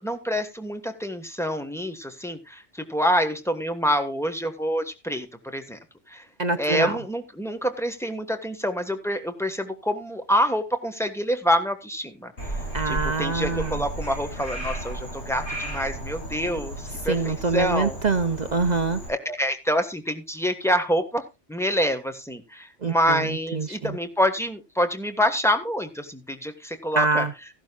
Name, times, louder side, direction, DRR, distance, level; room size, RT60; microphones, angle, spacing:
voice 1, 0.0-5.8 6.1-6.2 6.6-12.3 12.8-18.0 19.1-21.2 21.5-27.3, equal, ahead, 1.3 m, -26 dB
voice 2, 6.4-7.0 12.7-13.8 17.1-19.0 22.8-23.2 23.5-24.0 26.9-27.3, right 4 dB, 45° right, 0.7 m, -25 dB
Frog, 12.4-19.1, right 1 dB, 70° left, 6.8 m, -34 dB
15.5 x 11.5 x 2.3 m
omnidirectional pair, 1.2 m